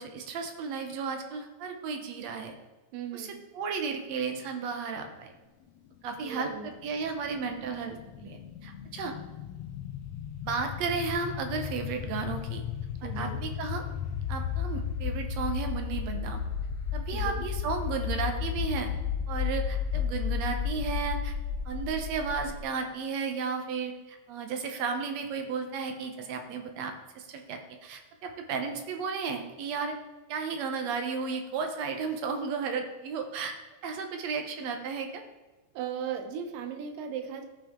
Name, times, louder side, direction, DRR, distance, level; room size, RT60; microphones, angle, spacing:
voice 1, 0.0-2.6 3.1-5.3 6.0-9.2 10.4-12.6 13.0-13.8 14.3-16.4 16.9-18.9 19.3-21.4 21.7-30.0 30.3-33.6 33.8-35.2, right 5 dB, 65° right, 5 dB, 1.9 m, -34 dB
voice 2, 2.9-3.4 6.2-6.7 13.0-13.4 17.1-17.4 35.7-37.5, right 7 dB, 85° right, 7 dB, 2.5 m, -37 dB
sound 1, 6.7-22.6, left 7 dB, 75° left, 1.8 m, -33 dB
17.0 x 5.7 x 3.7 m, 1.2 s
omnidirectional pair, 3.8 m